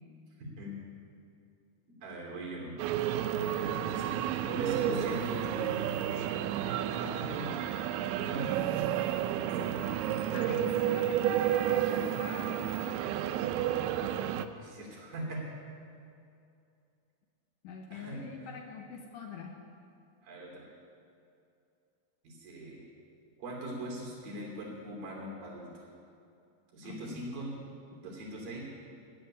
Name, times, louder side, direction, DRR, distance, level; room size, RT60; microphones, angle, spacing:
voice 1, 0.4-0.8 2.0-2.8 3.9-4.1 4.5-5.9 6.6-7.5 8.2-8.9 9.3-9.9 14.5-15.5 17.9-18.6 20.2-20.7 22.2-22.8 23.4-25.9 26.7-27.5 28.0-28.6, right 1 dB, 65° right, -2 dB, 4.6 m, -41 dB
Bowed string instrument, 2.5-6.9, right 2 dB, ahead, 3.1 m, -51 dB
sound 1, 2.8-14.5, right 11 dB, 90° right, 2.5 m, -31 dB
voice 2, 10.3-12.6 17.6-19.6 26.8-27.2 27.9-28.0, left 6 dB, 75° left, 2 dB, 2.1 m, -44 dB
13.5 x 7.8 x 9.9 m, 2.5 s
omnidirectional pair, 4.4 m